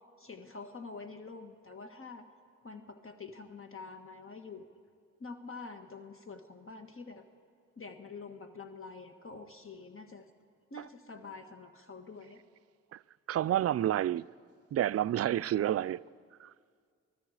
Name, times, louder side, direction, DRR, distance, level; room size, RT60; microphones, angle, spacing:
voice 1, 0.2-2.3 2.6-4.7 5.2-7.3 7.8-10.3 10.7-12.4, left 4 dB, 45° left, 1.4 m, -46 dB
voice 2, 13.3-14.2 14.7-16.0 16.4-16.5, right 12 dB, 50° right, 0.4 m, -29 dB
28.5 x 19.5 x 4.9 m
cardioid pair, 55°, 30 cm